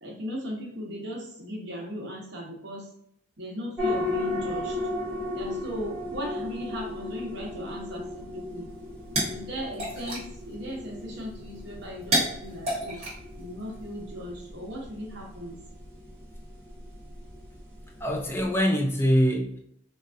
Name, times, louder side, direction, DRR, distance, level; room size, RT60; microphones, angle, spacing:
voice 1, 0.0-2.9 3.4-4.8 5.3-8.7 9.3-13.0 13.4-15.6, equal, 55° right, -2 dB, 1.0 m, -37 dB
sound 1, 3.8-18.6, left 2 dB, 10° right, 1.3 m, -36 dB
sound 2, 8.7-14.0, right 1 dB, 30° right, 1.1 m, -33 dB
voice 2, 18.0-19.6, equal, 10° left, 2 dB, 0.3 m, -24 dB
3.9 x 2.4 x 2.5 m, 0.71 s
head